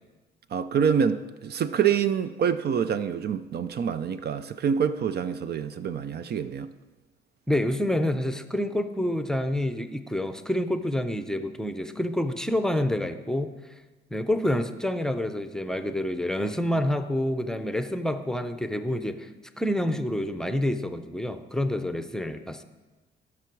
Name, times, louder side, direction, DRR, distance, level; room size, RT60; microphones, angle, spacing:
voice 1, 0.5-6.7, right 7 dB, 55° right, 0.5 m, -26 dB
voice 2, 7.5-13.5 14.1-19.3 19.6-22.6, left 1 dB, 5° left, 0.7 m, -28 dB
17.5 x 6.1 x 4.6 m
cardioid pair, 90°, 20 cm